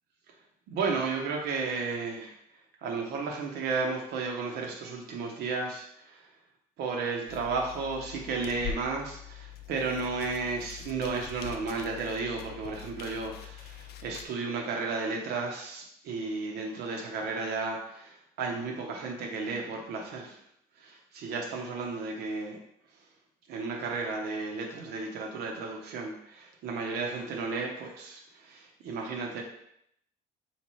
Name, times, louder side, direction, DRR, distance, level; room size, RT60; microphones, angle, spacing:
voice 1, 0.7-2.4 2.8-6.3 6.8-20.4 20.8-22.6 23.5-29.4, right 4 dB, 75° right, 1 dB, 0.8 m, -33 dB
sound 1, 7.3-14.3, left 9 dB, 70° left, 0.4 m, -43 dB
3.5 x 2.9 x 3.1 m, 0.73 s
cardioid pair, 110°, 17 cm